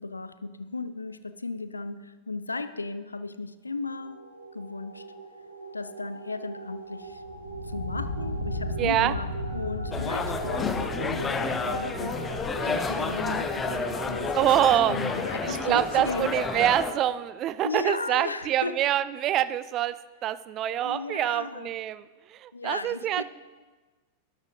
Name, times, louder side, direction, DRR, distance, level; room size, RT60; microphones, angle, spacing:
voice 1, 0.0-4.2 4.5-5.1 5.7-7.2 7.6-16.3 17.6-18.8 20.8-21.7 22.5-23.2, left 3 dB, 80° left, 13 dB, 0.4 m, -35 dB
sound 1, 3.9-17.0, equal, 85° right, 1.0 m, -36 dB
voice 2, 8.8-9.2 14.4-15.0 15.4-23.2, right 12 dB, 35° right, 16 dB, 0.3 m, -26 dB
sound 2, 9.9-16.9, left 4 dB, 20° left, 0.6 m, -30 dB
12.0 x 11.5 x 2.6 m, 1.3 s
figure-of-eight pair, 90°, 0 cm